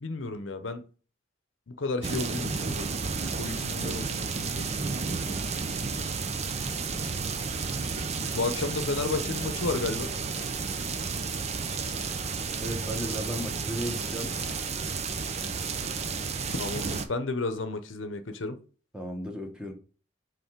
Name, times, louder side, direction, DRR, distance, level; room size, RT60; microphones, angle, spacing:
voice 1, 0.0-0.8 1.7-2.9 3.3-4.7 8.3-10.1 16.6-18.6, left 3 dB, 80° left, 0.8 m, -32 dB
sound 1, 2.0-17.1, right 4 dB, 35° right, 0.6 m, -32 dB
voice 2, 12.6-14.3 18.9-19.7, equal, 5° right, 1.3 m, -34 dB
5.7 x 3.8 x 4.6 m
head